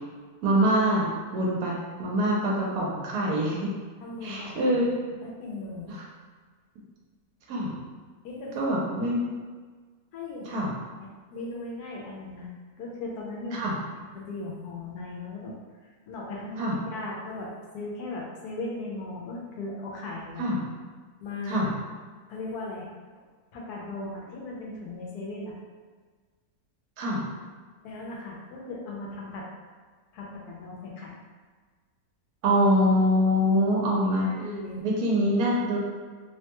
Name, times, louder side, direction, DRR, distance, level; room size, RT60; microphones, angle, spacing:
voice 1, 0.4-3.7 4.2-4.9 5.9-6.0 7.5-7.8 8.6-9.3 10.5-10.7 13.5-13.7 16.6-16.8 20.4-20.6 21.5-21.7 27.0-27.3 32.4-34.3 34.8-35.8, equal, 80° right, -4 dB, 1.2 m, -24 dB
voice 2, 4.0-5.0 5.2-5.9 8.2-8.5 10.1-10.7 11.0-12.5 12.8-13.8 14.1-15.6 15.8-20.4 21.2-21.7 22.3-22.9 23.5-25.6 27.8-29.5 30.1-31.2 34.0-34.8, left 2 dB, 85° left, -3 dB, 1.2 m, -37 dB
3.1 x 2.2 x 2.9 m, 1.5 s
omnidirectional pair, 1.6 m